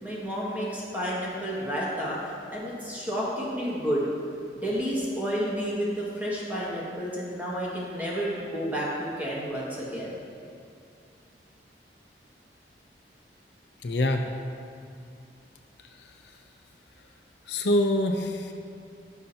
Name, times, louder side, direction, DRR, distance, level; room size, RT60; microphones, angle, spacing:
voice 1, 0.0-2.2 2.5-4.0 4.6-10.1, equal, 10° right, -7 dB, 1.8 m, -30 dB
voice 2, 13.8-14.3 17.5-18.5, left 1 dB, 70° left, 4 dB, 0.6 m, -25 dB
16.0 x 6.6 x 2.9 m, 2.4 s
head